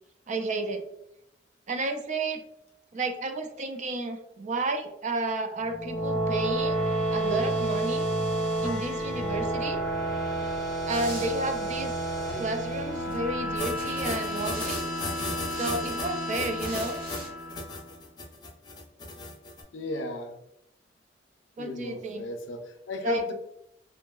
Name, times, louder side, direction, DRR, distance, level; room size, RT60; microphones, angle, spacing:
voice 1, 0.3-0.8 1.7-2.4 2.9-6.8 7.1-8.1 8.6-9.8 10.9-12.0 12.3-14.8 15.5-17.0 21.6-22.3 23.0-23.2, right 2 dB, 40° right, 6 dB, 0.3 m, -31 dB
sound 1, 5.6-18.0, right 1 dB, 5° left, 0.8 m, -30 dB
sound 2, 10.9-11.8 12.6-13.2 13.6-16.0 16.5-17.3, right 2 dB, 55° right, 1.1 m, -44 dB
sound 3, 13.6-19.6, left 2 dB, 25° left, 0.4 m, -36 dB
voice 2, 19.7-20.4 21.6-23.3, left 1 dB, 90° left, 5 dB, 0.5 m, -35 dB
2.8 x 2.6 x 2.3 m, 0.80 s
head